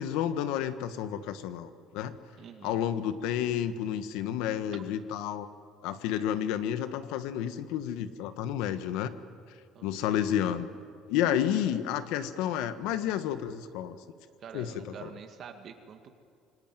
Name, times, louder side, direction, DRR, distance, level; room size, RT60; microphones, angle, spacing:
voice 1, 0.0-2.2 2.6-5.5 5.8-9.1 9.8-10.7 11.1-14.0 14.5-15.1, left 10 dB, 85° left, 10 dB, 1.4 m, -31 dB
voice 2, 2.4-2.8 9.7-10.0 14.4-16.2, right 7 dB, 45° right, 5 dB, 2.0 m, -46 dB
27.0 x 20.0 x 9.2 m, 2.2 s
cardioid pair, 145°, 0 cm